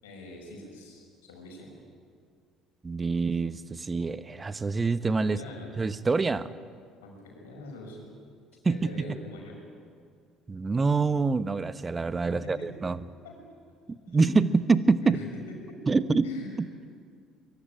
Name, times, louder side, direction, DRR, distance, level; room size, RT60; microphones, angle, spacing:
voice 1, 0.0-1.7 5.2-5.7 7.0-8.1 8.7-9.6 12.3-12.7 13.2-13.4 14.1-14.5 15.0-15.3 15.7-16.0 16.2-16.6, left 1 dB, 75° left, 1 dB, 6.2 m, -43 dB
voice 2, 2.8-5.4 5.8-6.5 8.6-8.9 10.5-13.0 14.1-15.2 15.9-16.3, right 4 dB, 25° right, 14 dB, 1.1 m, -25 dB
23.5 x 23.0 x 9.0 m, 2.1 s
figure-of-eight pair, 55°, 0 cm